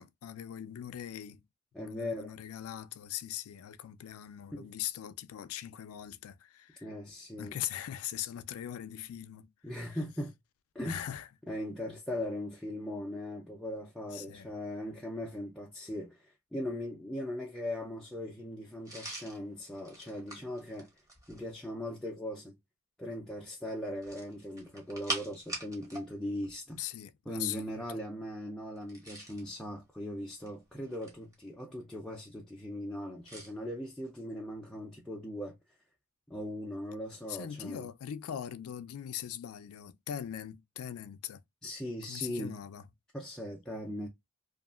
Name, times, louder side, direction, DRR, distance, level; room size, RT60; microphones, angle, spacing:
voice 1, 0.0-1.4 1.8-6.9 7.4-9.5 9.9-10.0 10.9-11.3 14.1-14.5 26.8-27.9 37.3-41.4 42.1-42.8, left 10 dB, 75° left, 0.3 m, -41 dB
voice 2, 1.7-2.4 4.5-4.7 6.8-7.6 9.6-10.3 10.7-11.0 11.5-20.9 21.3-22.6 23.0-26.8 27.3-35.6 36.3-37.9 41.6-42.6 43.1-44.1, left 1 dB, ahead, 0.4 m, -39 dB
sound 1, 18.8-21.5 23.9-26.1 26.4-26.5 28.8-29.5 30.2-31.3 33.2-33.5, right 2 dB, 15° right, 0.8 m, -42 dB
2.7 x 2.4 x 2.3 m
head